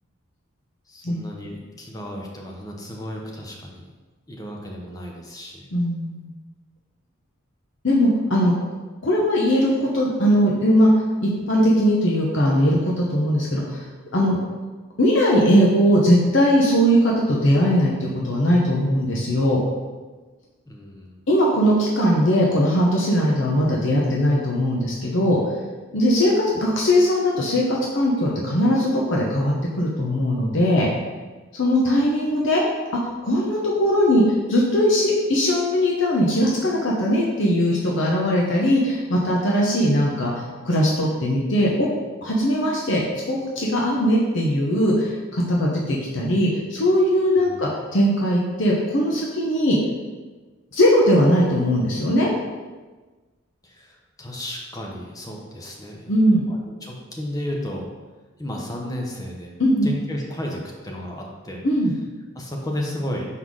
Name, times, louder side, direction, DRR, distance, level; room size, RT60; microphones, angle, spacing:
voice 1, 0.9-3.9 4.3-5.6 20.7-21.2 47.4-47.6 53.6-56.1 56.5-57.9 58.4-59.5 59.8-61.6 62.3-63.3, left 1 dB, 15° left, 0 dB, 0.8 m, -33 dB
voice 2, 5.7-6.3 7.8-8.5 9.0-13.8 14.1-14.4 15.0-19.6 21.3-25.4 25.9-30.9 31.5-32.6 33.2-41.9 42.2-43.0 43.3-49.8 50.7-52.3 56.1-56.4 59.6-59.9 61.6-61.9, equal, 65° left, -3 dB, 0.9 m, -20 dB
5.6 x 4.0 x 4.7 m, 1.3 s
head